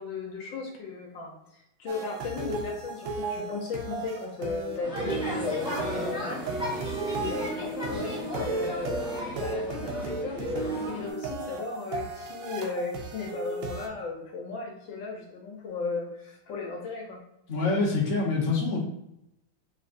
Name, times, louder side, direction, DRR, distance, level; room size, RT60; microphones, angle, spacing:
voice 1, 0.0-6.4 7.1-17.2, left 4 dB, 70° left, 0 dB, 1.5 m, -36 dB
sound 1, 1.9-13.9, right 3 dB, 80° right, 1.5 m, -34 dB
sound 2, 4.8-11.1, left 1 dB, 5° right, 0.6 m, -35 dB
voice 2, 17.5-18.8, left 3 dB, 45° left, -4 dB, 1.2 m, -25 dB
5.4 x 3.3 x 2.6 m, 0.83 s
omnidirectional pair, 2.2 m